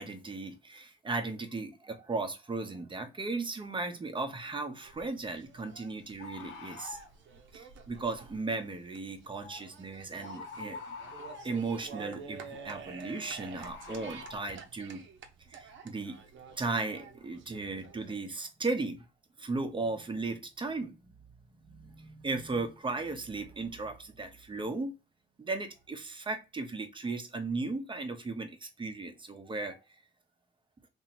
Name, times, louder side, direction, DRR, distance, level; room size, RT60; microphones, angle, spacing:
voice 1, 0.0-7.0 7.5-11.0 11.4-15.0 15.5-16.2 16.6-19.0 19.4-24.9 25.4-29.8, right 3 dB, 25° right, 6 dB, 0.8 m, -36 dB
Bird, 4.5-4.6 6.2-7.1 9.4-9.6 10.2-11.6 13.6-14.4, left 4 dB, 80° left, 0.7 m, -45 dB
sound 1, 4.8-18.2, right 5 dB, 70° right, 0.8 m, -49 dB
2.9 x 2.7 x 4.2 m, 0.29 s
cardioid pair, 90°, 20 cm